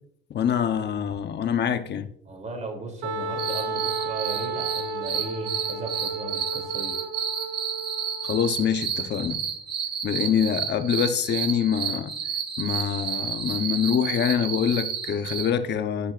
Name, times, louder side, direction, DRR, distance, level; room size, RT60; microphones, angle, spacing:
voice 1, 0.3-2.1 8.2-9.4 10.0-12.1 12.6-16.1, left 8 dB, 60° left, 0.9 m, -25 dB
voice 2, 2.2-7.0, right 2 dB, 35° right, 3.2 m, -36 dB
Wind instrument woodwind instrument, 3.0-8.6, right 3 dB, 85° right, 1.0 m, -33 dB
sound 1, 3.4-15.5, right 8 dB, 55° right, 1.7 m, -31 dB
12.0 x 9.9 x 2.5 m
cardioid pair, 90°, 20 cm